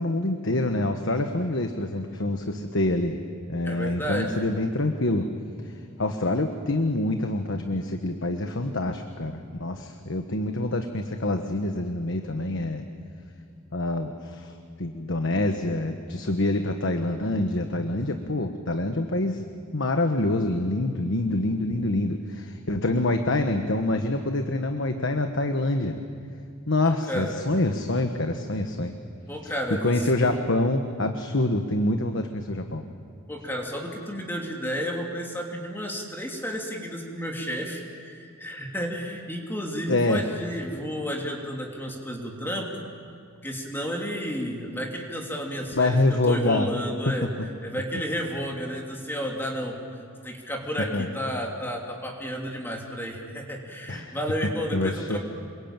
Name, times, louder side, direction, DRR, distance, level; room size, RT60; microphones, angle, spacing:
voice 1, 0.0-3.2 3.5-5.3 6.0-12.8 13.7-14.5 14.8-19.4 19.7-26.0 26.7-28.9 29.4-29.5 29.8-32.8 39.9-40.2 45.7-46.7 47.1-47.3 50.9-51.1 53.9-54.1 54.7-55.2, left 2 dB, 60° left, 6 dB, 1.3 m, -26 dB
voice 2, 3.6-4.5 26.8-27.3 29.3-30.4 33.3-42.7 43.4-47.3 47.6-55.2, equal, 10° left, 0 dB, 3.0 m, -32 dB
27.5 x 23.5 x 9.0 m, 2.4 s
head